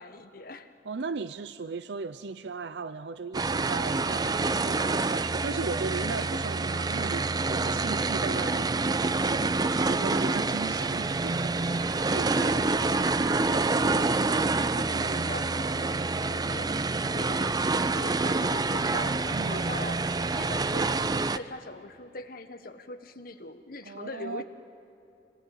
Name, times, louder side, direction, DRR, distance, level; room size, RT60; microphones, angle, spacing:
voice 1, 0.0-0.7 12.1-16.0 16.3-16.7 17.1-17.6 17.9-24.4, left 2 dB, 55° left, 1.5 m, -42 dB
voice 2, 0.9-8.7 9.2-11.6 12.0-12.6 14.9-15.3 19.3-19.7 23.8-24.4, right 4 dB, 70° right, 0.6 m, -37 dB
sound 1, 3.3-21.4, right 3 dB, 20° right, 0.5 m, -27 dB
26.5 x 19.0 x 9.4 m
head